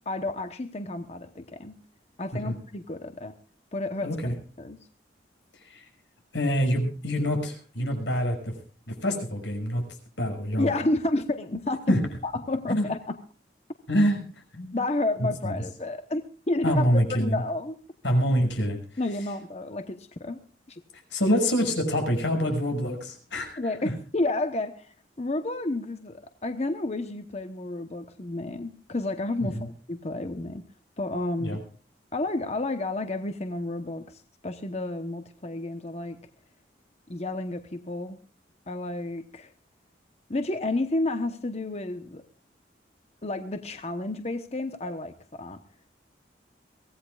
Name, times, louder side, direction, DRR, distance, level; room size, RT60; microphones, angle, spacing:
voice 1, 0.0-1.8 2.2-3.3 3.7-4.1 4.6-4.8 10.6-12.0 12.2-13.2 14.7-16.8 17.2-17.8 19.0-20.4 20.7-20.8 23.6-29.6 29.9-30.6 31.0-31.6 32.1-36.2 37.1-38.2 38.7-39.5 40.3-42.2 43.2-45.6, left 2 dB, 35° left, 8 dB, 1.0 m, -31 dB
voice 2, 4.0-4.3 5.6-5.8 6.3-8.5 8.9-9.9 10.2-10.7 11.9-12.0 12.7-12.9 13.9-14.2 14.5-14.8 15.2-15.6 16.6-17.4 18.0-18.8 21.1-23.9 29.4-29.7 31.4-31.6, equal, 90° left, 4 dB, 6.2 m, -26 dB
23.5 x 17.0 x 2.4 m, 0.39 s
head